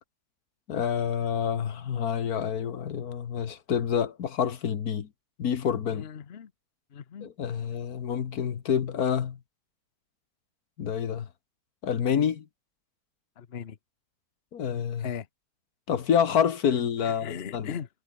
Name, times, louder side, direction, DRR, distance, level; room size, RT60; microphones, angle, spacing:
voice 1, 0.7-5.1 5.4-6.1 7.2-9.4 10.8-11.3 11.8-12.5 14.5-15.1 15.9-17.7, left 8 dB, 80° left, 1.8 m, -28 dB
voice 2, 5.9-6.5 6.9-7.3 13.4-13.8 15.0-15.3 17.0-17.9, left 7 dB, 45° left, 1.2 m, -38 dB
omnidirectional pair, 1.6 m